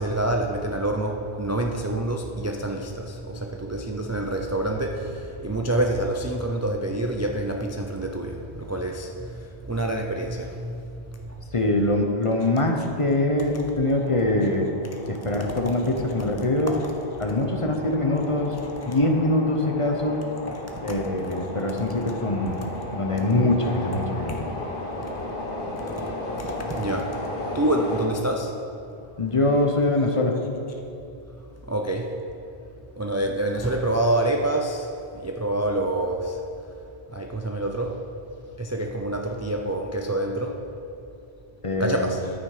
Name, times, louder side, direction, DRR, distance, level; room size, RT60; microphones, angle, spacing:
voice 1, 0.0-10.7 11.3-11.4 16.2-16.3 20.9-21.0 24.3-24.4 25.9-26.1 26.4-27.2 27.5-28.5 31.7-32.1 33.0-34.9 35.2-36.4 37.1-38.0 38.6-40.6 41.8-42.3, right 1 dB, 20° right, 2 dB, 0.4 m, -27 dB
voice 2, 11.5-14.7 15.1-16.7 17.2-18.6 18.9-20.2 20.8-22.6 22.9-24.3 29.2-30.4 41.6-42.1, left 2 dB, 35° left, 3 dB, 0.8 m, -23 dB
sound 1, 13.8-28.1, left 1 dB, 55° left, 1.4 m, -35 dB
9.8 x 9.1 x 5.0 m, 2.8 s
omnidirectional pair, 1.1 m